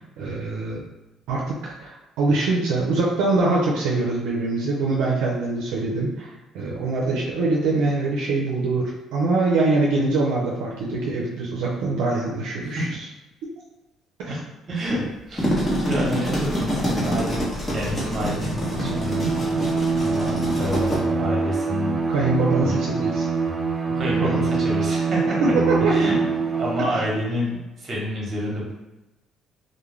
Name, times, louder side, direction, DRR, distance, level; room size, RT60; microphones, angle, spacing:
voice 1, 0.2-0.8 1.3-6.3 6.5-12.8 14.2-14.3 22.1-23.3 24.2-24.6 25.4-26.1, right 3 dB, 85° right, -4 dB, 0.5 m, -23 dB
voice 2, 14.7-15.5 15.8-19.4 20.0-22.0 22.6-22.8 23.9-25.2 25.8-26.2 26.5-28.7, equal, 45° right, -3 dB, 1.0 m, -28 dB
sound 1, 15.2-21.0, equal, 25° left, 1.0 m, -26 dB
Bowed string instrument, 18.5-27.1, right 4 dB, 25° right, 0.3 m, -24 dB
2.3 x 2.1 x 3.1 m, 1.0 s
cardioid pair, 85°, 0 cm